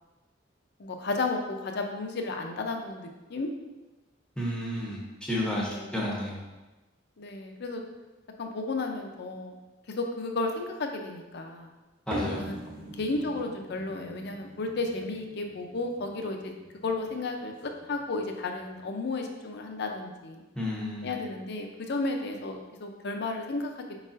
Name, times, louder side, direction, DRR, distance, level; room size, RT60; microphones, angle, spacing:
voice 1, 0.8-3.5 5.7-5.9 7.2-7.8 8.4-9.6 10.0-11.7 12.4-12.6 13.0-16.5 16.8-20.4 21.0-24.0, left 3 dB, 60° left, 4 dB, 0.5 m, -33 dB
voice 2, 4.4-6.4 12.1-12.5 20.5-21.1, left 1 dB, 5° left, -4 dB, 0.7 m, -32 dB
sound 1, 12.1-18.8, equal, 45° right, 1.1 m, -43 dB
4.6 x 3.9 x 2.5 m, 1.1 s
head